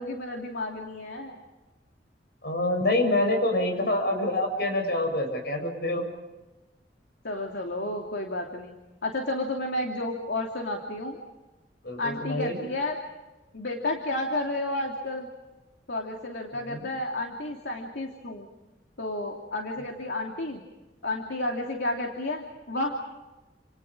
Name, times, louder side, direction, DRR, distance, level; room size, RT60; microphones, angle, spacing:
voice 1, 0.0-1.4 7.2-8.8 9.0-11.2 12.0-13.0 13.5-15.3 15.9-18.5 19.0-20.6 21.0-23.0, left 2 dB, 80° left, 1 dB, 2.9 m, -31 dB
voice 2, 2.4-6.1 11.8-12.6 16.6-16.9, left 1 dB, 65° left, 4 dB, 7.8 m, -26 dB
30.0 x 28.0 x 5.1 m, 1.1 s
head